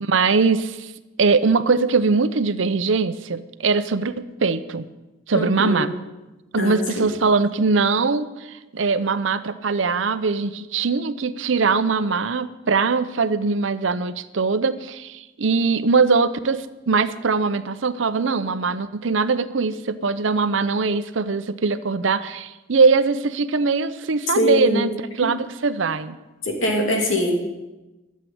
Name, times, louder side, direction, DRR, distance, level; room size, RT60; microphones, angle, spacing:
voice 1, 0.0-0.9 1.2-4.8 5.3-5.9 6.5-24.9 25.2-26.2, right 4 dB, 80° right, 13 dB, 0.7 m, -21 dB
voice 2, 5.3-5.9 6.6-7.1 24.3-24.8 26.4-27.3, left 1 dB, 90° left, 1 dB, 2.9 m, -22 dB
12.5 x 7.5 x 9.3 m, 1.1 s
head